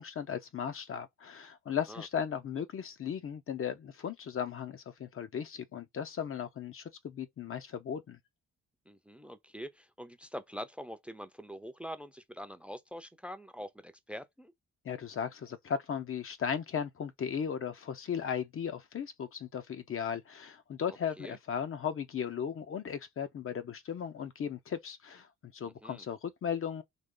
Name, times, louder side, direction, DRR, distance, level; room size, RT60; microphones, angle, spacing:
voice 1, 0.0-8.2 14.8-25.3 25.5-26.8, left 7 dB, 45° left, 0.7 m, -36 dB
voice 2, 8.9-14.5 20.9-21.4 25.6-26.1, equal, 5° right, 0.6 m, -44 dB
3.9 x 2.9 x 3.8 m
cardioid pair, 90°, 30 cm